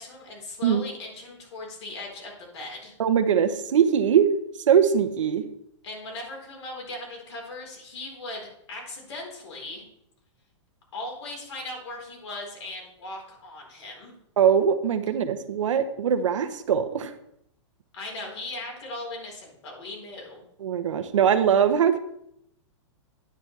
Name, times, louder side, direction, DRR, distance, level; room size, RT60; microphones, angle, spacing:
voice 1, 0.0-2.9 5.8-9.8 10.9-14.1 17.9-20.4, left 2 dB, 60° left, -1 dB, 4.3 m, -38 dB
voice 2, 3.0-4.3 4.7-5.4 14.4-17.1 20.6-22.0, right 8 dB, 80° right, 10 dB, 1.0 m, -21 dB
9.9 x 9.1 x 3.3 m, 0.77 s
hypercardioid pair, 170°, 16 cm